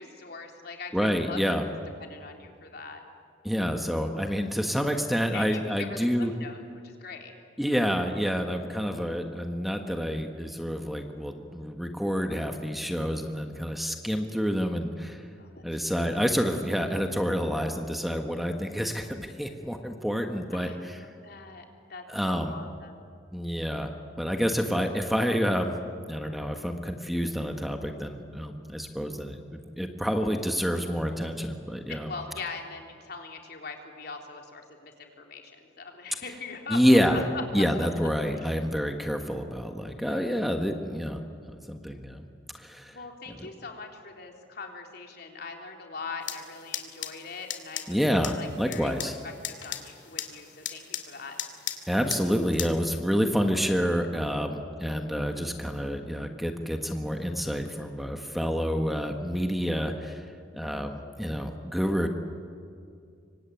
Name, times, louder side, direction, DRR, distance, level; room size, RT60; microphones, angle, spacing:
voice 1, 0.0-1.4 2.0-3.0 5.3-7.3 15.4-16.2 20.5-23.0 31.9-37.6 38.4-38.6 39.9-40.3 42.9-49.0 49.2-51.4, left 4 dB, 60° left, 2 dB, 3.6 m, -42 dB
voice 2, 0.9-1.6 3.4-6.3 7.6-15.2 15.6-21.0 22.1-22.5 23.3-23.9 24.2-25.7 26.1-32.1 36.7-37.2 37.5-41.2 41.5-42.2 42.5-43.0 43.3-43.4 47.9-49.1 51.9-60.3 60.5-62.1, equal, ahead, 4 dB, 1.4 m, -28 dB
sound 1, 46.2-52.7, left 10 dB, 80° left, 2.4 m, -38 dB
25.5 x 24.5 x 9.3 m, 2.3 s
head